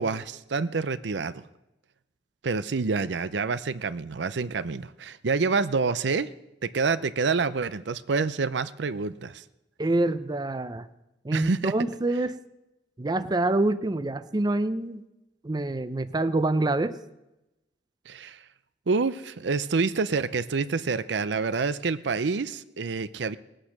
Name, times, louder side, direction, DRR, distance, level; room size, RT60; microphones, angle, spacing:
voice 1, 0.0-1.4 2.4-6.3 6.6-9.4 11.3-11.7 18.1-18.4 18.9-23.4, right 4 dB, 75° right, 14 dB, 0.6 m, -27 dB
voice 2, 9.8-10.9 11.2-12.4 13.0-15.0 15.4-17.0, right 2 dB, 25° right, 12 dB, 0.5 m, -26 dB
19.0 x 8.9 x 6.5 m, 0.95 s
head